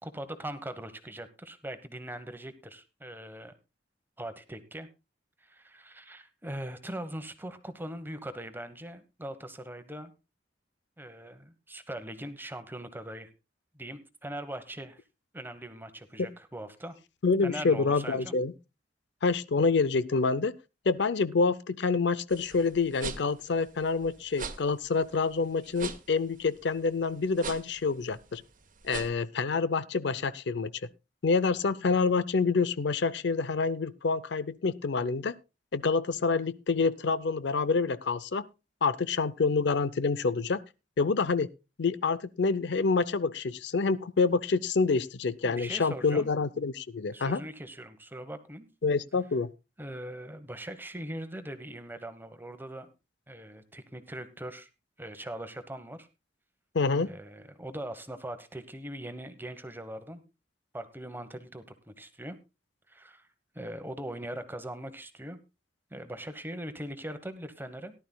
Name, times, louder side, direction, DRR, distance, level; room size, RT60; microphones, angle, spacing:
voice 1, 0.0-3.5 4.2-4.9 5.4-10.1 11.0-13.3 13.7-15.0 15.3-17.0 17.4-18.3 45.4-46.3 47.1-48.7 49.8-52.9 53.3-54.7 55.0-56.1 57.0-60.2 60.7-62.4 62.9-63.3 63.5-65.4 65.9-67.9, right 1 dB, 10° right, 1.1 m, -41 dB
voice 2, 17.2-18.5 19.2-20.5 20.9-28.4 28.8-30.7 31.2-35.3 35.7-38.4 38.8-40.6 41.0-41.5 41.8-47.4 48.8-49.5 56.7-57.1, left 4 dB, 70° left, 0.6 m, -27 dB
sound 1, 22.3-29.1, right 5 dB, 50° right, 1.2 m, -42 dB
18.0 x 11.5 x 2.3 m
head